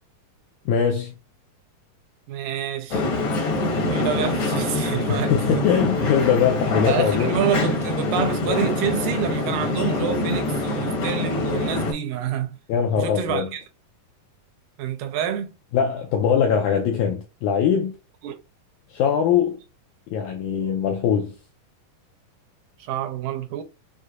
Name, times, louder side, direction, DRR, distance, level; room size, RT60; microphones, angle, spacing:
voice 1, 0.7-1.1 5.1-7.4 12.7-13.5 15.7-17.9 18.9-19.6 20.1-21.4, left 7 dB, 85° left, 1.8 m, -21 dB
voice 2, 2.3-3.1 3.9-5.6 6.9-12.6 13.0-13.6 14.8-15.5 18.2-18.4 22.8-23.6, right 9 dB, 80° right, 2.2 m, -28 dB
sound 1, 2.9-11.9, left 2 dB, 65° left, 1.4 m, -25 dB
6.4 x 2.7 x 2.4 m
omnidirectional pair, 4.0 m